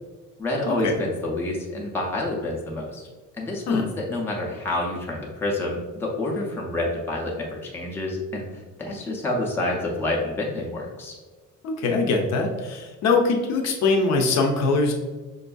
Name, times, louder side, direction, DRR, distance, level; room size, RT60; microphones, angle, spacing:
voice 1, 0.4-3.1 3.4-11.1, left 2 dB, 10° left, -3 dB, 0.5 m, -28 dB
voice 2, 11.6-14.9, left 3 dB, 60° left, 2 dB, 0.6 m, -22 dB
5.3 x 2.5 x 2.3 m, 1.3 s
cardioid pair, 155°, 30 cm